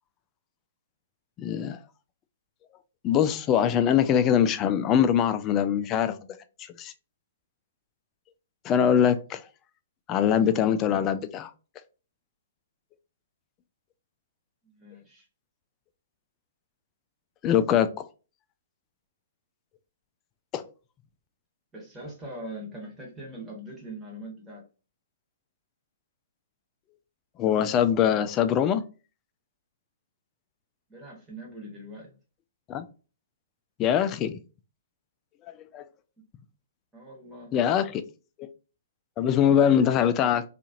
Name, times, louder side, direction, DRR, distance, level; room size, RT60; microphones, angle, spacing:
voice 1, 1.4-1.8 3.0-6.2 6.8-6.9 8.6-9.4 10.1-11.5 17.4-18.0 20.5-20.6 27.4-28.8 32.7-32.8 33.8-34.4 35.5-35.8 37.5-38.0 38.4-38.5 39.2-40.4, left 9 dB, 25° left, 0.3 m, -23 dB
voice 2, 14.6-15.3 21.7-24.7 30.9-32.2 36.9-37.5, right 1 dB, 10° right, 1.2 m, -42 dB
2.8 x 2.5 x 2.6 m
figure-of-eight pair, 120°, 0 cm